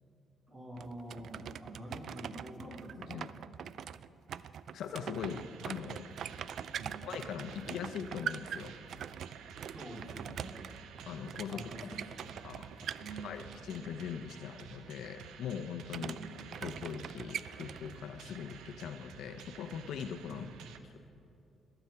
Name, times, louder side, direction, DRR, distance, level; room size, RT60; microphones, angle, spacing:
voice 1, 0.5-3.3 6.7-7.0 9.6-10.7 11.5-12.5 12.9-13.4 15.9-16.3 20.3-20.6, right 1 dB, 30° right, -2 dB, 3.6 m, -47 dB
sound 1, 0.8-13.8 15.9-18.0, right 8 dB, 65° right, 0.3 m, -43 dB
voice 2, 3.0-3.3 4.7-6.1 7.0-8.7 11.1-11.7 12.4-12.9 13.2-16.2 16.6-20.5, left 7 dB, 75° left, 8 dB, 0.7 m, -41 dB
sound 2, 5.2-20.8, right 7 dB, 85° right, 0.8 m, -52 dB
21.5 x 7.9 x 5.8 m, 2.6 s
cardioid pair, 90°, 0 cm